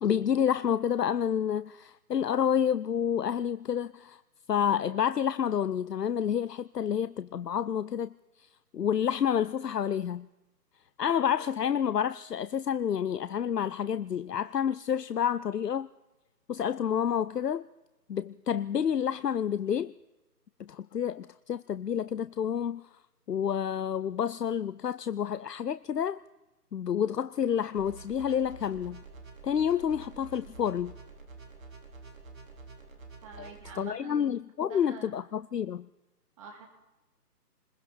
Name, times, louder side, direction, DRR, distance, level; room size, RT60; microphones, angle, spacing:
voice 1, 0.0-4.2 4.5-8.1 8.4-8.5 8.7-10.3 11.0-15.9 16.5-17.7 18.1-19.9 20.6-22.8 23.3-26.2 26.7-29.0 29.4-30.9 33.4-33.5 33.8-35.9, left 8 dB, 75° left, 0.7 m, -29 dB
sound 1, 27.7-33.7, right 4 dB, 55° right, 4.3 m, -48 dB
voice 2, 33.2-34.3 34.7-35.2 36.4-36.7, right 5 dB, 20° right, 2.8 m, -46 dB
29.0 x 21.5 x 4.3 m
figure-of-eight pair, 150°, 49 cm